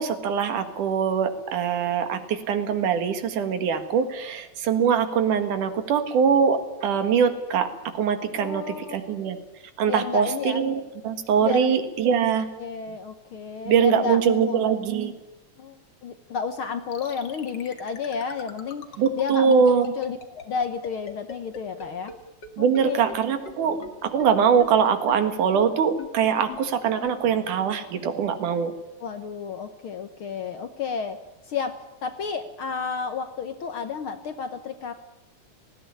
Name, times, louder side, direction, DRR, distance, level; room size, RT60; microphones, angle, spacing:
voice 1, 0.0-7.7 7.9-9.4 9.8-12.5 13.7-15.1 19.0-19.9 22.6-28.7, right 7 dB, 90° right, 9 dB, 3.3 m, -23 dB
voice 2, 8.4-9.1 9.9-10.6 11.4-11.7 12.6-14.7 15.6-15.8 16.0-20.2 20.4-22.2 22.6-23.0 29.0-31.2 31.4-35.0, left 6 dB, 65° left, 8 dB, 1.4 m, -31 dB
sound 1, 16.9-22.1 22.4-22.5 22.7-22.8 23.1-23.2 23.5-23.6 23.8-23.9 24.2-24.3 24.6-24.7 25.1-25.2 25.5-25.6 26.0-26.1 26.5-26.6 27.0-27.1, left 6 dB, 40° left, 2.2 m, -39 dB
19.0 x 16.0 x 9.9 m, 1.0 s
omnidirectional pair, 3.5 m